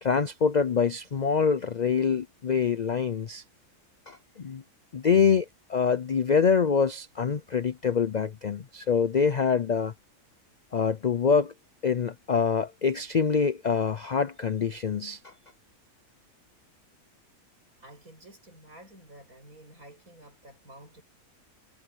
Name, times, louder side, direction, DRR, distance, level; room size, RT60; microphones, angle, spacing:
voice 1, 0.0-3.4 4.1-4.6 4.9-9.9 10.7-11.5 11.8-15.3, left 6 dB, 65° left, 0.4 m, -25 dB
voice 2, 17.8-21.0, right 1 dB, 65° right, 7.5 m, -51 dB
omnidirectional pair, 1.6 m